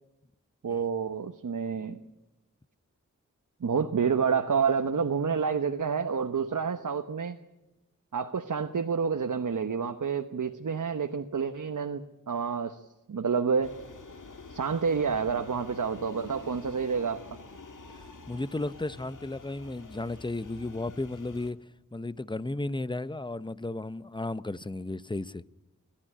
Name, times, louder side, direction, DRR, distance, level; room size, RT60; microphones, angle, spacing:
voice 1, 0.6-2.0 3.6-7.4 8.1-13.7 14.5-17.2, right 6 dB, 70° right, 1.1 m, -29 dB
sound 1, 13.6-21.5, left 3 dB, 75° left, 2.1 m, -47 dB
voice 2, 17.9-21.6 21.9-25.4, left 2 dB, 15° left, 0.7 m, -34 dB
29.0 x 12.0 x 10.0 m
cardioid pair, 45°, 31 cm